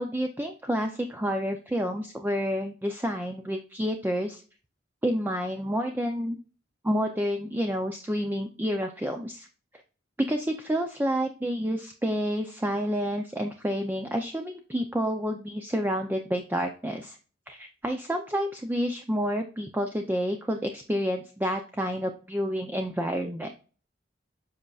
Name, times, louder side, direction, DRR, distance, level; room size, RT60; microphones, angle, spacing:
voice 1, 0.0-4.4 5.0-6.4 6.8-9.5 10.2-17.2 17.5-23.5, equal, 10° right, 4 dB, 0.5 m, -29 dB
7.6 x 5.3 x 2.4 m, 0.37 s
head